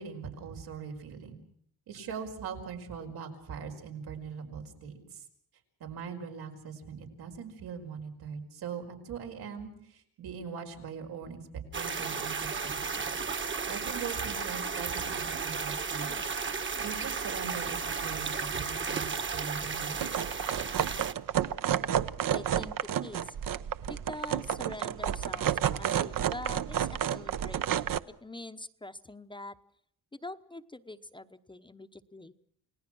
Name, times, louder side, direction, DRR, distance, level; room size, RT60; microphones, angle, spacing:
voice 1, 0.0-1.4 1.9-5.2 5.8-13.1 13.7-20.0, right 6 dB, 90° right, 3 dB, 5.3 m, -41 dB
sound 1, 11.7-21.1, right 5 dB, 30° right, 1.3 m, -34 dB
sound 2, 20.0-28.0, right 10 dB, 60° right, 0.9 m, -30 dB
voice 2, 22.3-23.4 23.9-27.7 28.0-29.6 30.1-32.3, left 2 dB, 15° left, 10 dB, 0.9 m, -44 dB
29.0 x 19.0 x 6.2 m, 0.66 s
cardioid pair, 125°, 37 cm